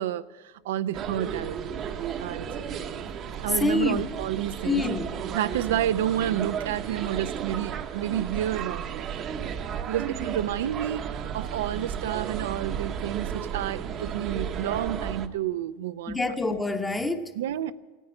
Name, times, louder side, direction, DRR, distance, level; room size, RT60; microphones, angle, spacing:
voice 1, 0.0-1.8 2.2-2.6 3.4-4.8 5.3-9.1 9.9-16.2 17.4-17.7, right 11 dB, 80° right, 0.5 m, -30 dB
sound 1, 0.9-15.3, right 8 dB, 35° right, 0.9 m, -34 dB
voice 2, 3.6-4.0 4.6-5.4 16.1-17.3, left 2 dB, 10° left, 1.0 m, -27 dB
16.5 x 10.0 x 8.8 m
supercardioid pair, 140°, 0 cm